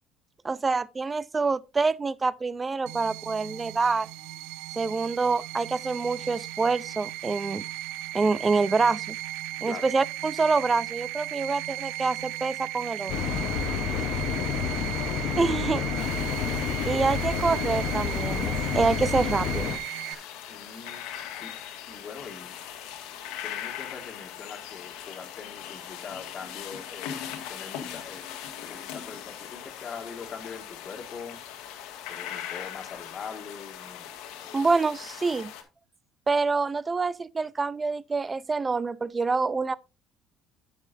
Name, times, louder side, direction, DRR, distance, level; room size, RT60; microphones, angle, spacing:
voice 1, 0.4-4.1 4.8-7.6 8.1-9.2 9.6-13.1 15.4-15.8 16.9-19.7 20.1-20.2 34.5-35.5 36.3-39.7, right 4 dB, 25° right, 0.5 m, -26 dB
sound 1, 2.9-20.1, right 15 dB, 90° right, 0.5 m, -36 dB
sound 2, 13.1-19.8, left 7 dB, 70° left, 0.9 m, -29 dB
voice 2, 14.4-14.8 15.7-16.2 20.5-21.0 21.4-21.6 21.9-22.5 23.4-27.2 27.5-28.4 28.6-31.4 32.1-34.1 34.4-34.6, left 5 dB, 45° left, 1.8 m, -42 dB
sound 3, 16.0-35.6, left 10 dB, 90° left, 1.7 m, -40 dB
9.0 x 8.6 x 2.6 m
cardioid pair, 105°, 0 cm